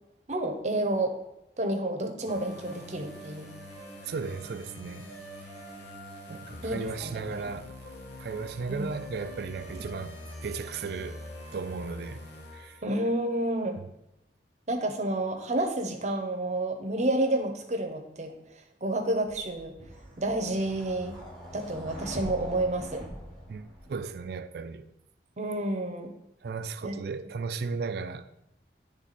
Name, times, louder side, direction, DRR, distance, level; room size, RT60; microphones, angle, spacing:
voice 1, 0.3-1.1 1.6-3.5 6.6-7.5 8.7-8.9 12.8-13.8 14.7-18.3 18.8-19.7 20.2-21.1 21.5-23.0 25.4-26.1 26.8-26.9, right 1 dB, 40° right, 0.8 m, -30 dB
sound 1, 2.3-13.1, left 1 dB, 75° left, 1.3 m, -44 dB
voice 2, 4.1-5.1 6.3-7.7 8.2-10.2 10.4-11.2 11.5-12.2 12.5-12.8 13.8-13.9 23.5-24.9 26.4-28.3, right 4 dB, 60° right, 0.4 m, -35 dB
sound 2, 19.3-24.2, equal, 5° left, 1.2 m, -43 dB
9.7 x 3.5 x 4.1 m
head